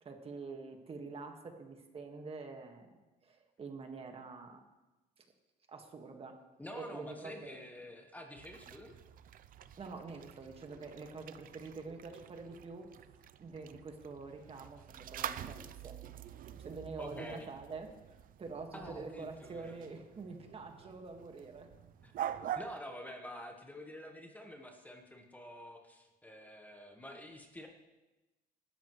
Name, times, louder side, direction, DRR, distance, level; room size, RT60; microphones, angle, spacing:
voice 1, 0.0-2.9 3.2-4.6 5.2-5.3 5.7-6.4 6.8-7.6 9.8-12.9 13.4-16.0 16.6-17.9 18.4-21.7, right 4 dB, 35° right, 4 dB, 1.8 m, -46 dB
voice 2, 6.6-9.0 17.0-17.5 18.7-19.8 22.0-27.7, left 1 dB, 10° left, 3 dB, 1.4 m, -48 dB
sound 1, 8.3-22.8, right 10 dB, 55° right, 0.6 m, -46 dB
19.0 x 13.0 x 3.2 m, 1.1 s
cardioid pair, 110°, 17 cm